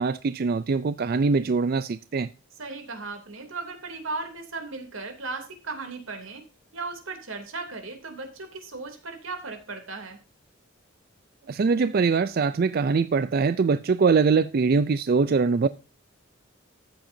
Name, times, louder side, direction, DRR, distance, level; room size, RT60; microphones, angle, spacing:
voice 1, 0.0-2.3 11.5-15.7, right 4 dB, 50° right, 0.4 m, -22 dB
voice 2, 2.6-6.4 6.7-10.2, right 3 dB, 85° right, 2.9 m, -36 dB
13.5 x 8.9 x 2.7 m
head